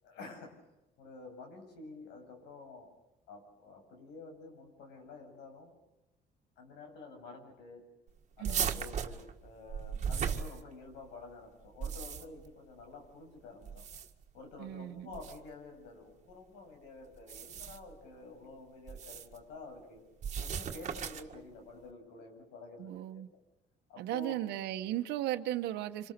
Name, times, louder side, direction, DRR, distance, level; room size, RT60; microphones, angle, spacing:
voice 1, 0.0-0.6 1.0-2.9 3.3-5.7 6.6-7.8 8.4-13.9 14.3-20.0 20.3-23.4 23.9-24.4, left 3 dB, 90° left, 7.9 m, -50 dB
sound 1, 8.4-11.1 11.6-12.5 13.6-14.3 15.1-15.4 17.2-17.9 18.9-19.4 20.2-21.4, right 7 dB, 45° right, 1.9 m, -37 dB
voice 2, 8.4-8.8 14.6-15.2 22.8-23.3 24.0-26.1, right 13 dB, 85° right, 1.2 m, -36 dB
27.0 x 26.5 x 6.8 m
cardioid pair, 110°, 17 cm